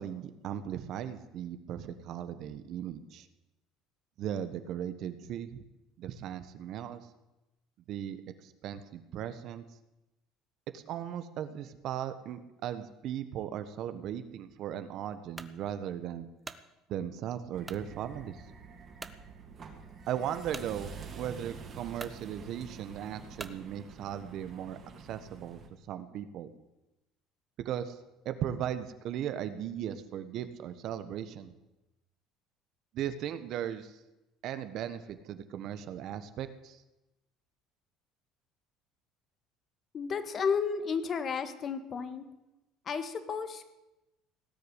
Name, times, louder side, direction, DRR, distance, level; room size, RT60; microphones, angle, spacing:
voice 1, 0.0-3.3 4.2-5.6 6.0-7.1 7.9-9.6 10.7-16.3 16.9-18.4 20.1-24.8 25.1-25.6 25.9-26.5 27.6-28.0 28.2-31.5 32.9-33.9 34.4-36.8, right 10 dB, 60° right, 11 dB, 1.3 m, -37 dB
sound 1, 15.4-15.6 16.2-16.7 17.6-17.9 18.4-18.5 19.0-19.2 20.5-20.7 21.5-21.6 21.9-22.2 23.4-23.6, right 3 dB, 15° right, 1.0 m, -44 dB
sound 2, 17.5-25.7, right 5 dB, 40° right, 3.0 m, -48 dB
voice 2, 39.9-42.2 42.9-43.8, left 6 dB, 40° left, 10 dB, 1.7 m, -32 dB
18.5 x 6.8 x 9.9 m, 0.97 s
supercardioid pair, 105°, 0 cm